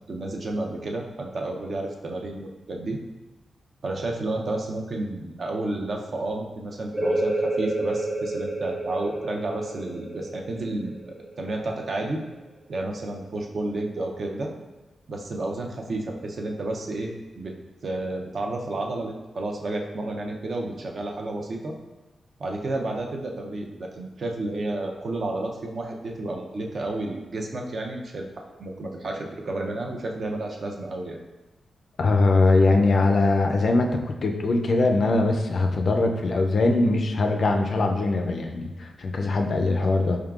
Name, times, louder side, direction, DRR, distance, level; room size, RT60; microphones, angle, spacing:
voice 1, 0.1-3.0 3.8-12.2 12.7-14.5 15.1-17.5 17.8-21.8 22.4-28.3 28.6-31.2 39.8-39.9, right 2 dB, 50° right, 1 dB, 0.5 m, -31 dB
sound 1, 6.9-12.3, right 1 dB, 20° right, 0.8 m, -30 dB
voice 2, 32.0-40.2, left 2 dB, 50° left, 3 dB, 0.4 m, -21 dB
4.6 x 3.6 x 2.3 m, 1.1 s
wide cardioid pair, 125°, 0 cm